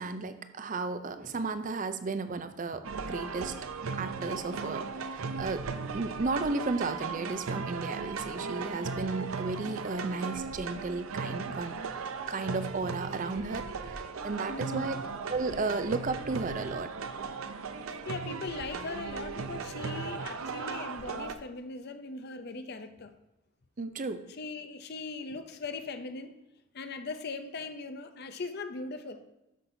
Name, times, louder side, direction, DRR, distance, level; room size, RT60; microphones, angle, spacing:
voice 1, 0.0-3.6 3.9-5.7 5.9-11.8 12.3-14.9 15.3-16.9 23.8-24.3, right 3 dB, 40° right, 10 dB, 0.5 m, -34 dB
sound 1, 2.8-21.4, right 4 dB, 90° right, 0.6 m, -37 dB
voice 2, 14.5-15.0 17.8-23.1 24.3-26.4 26.7-29.3, left 3 dB, 50° left, 9 dB, 0.5 m, -39 dB
12.5 x 6.0 x 2.7 m, 0.92 s
head